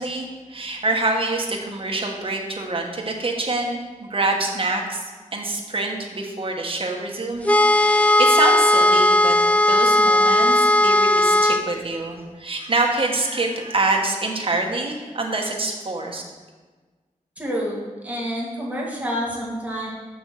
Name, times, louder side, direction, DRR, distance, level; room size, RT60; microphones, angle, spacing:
voice 1, 0.0-5.0 5.3-16.2, right 2 dB, 45° right, 1 dB, 1.3 m, -26 dB
sound 1, 7.4-11.7, left 1 dB, 10° left, 0.4 m, -16 dB
voice 2, 17.4-17.8 18.0-19.9, equal, 10° right, -4 dB, 2.1 m, -28 dB
6.6 x 6.3 x 6.4 m, 1.3 s
wide cardioid pair, 130°, 14 cm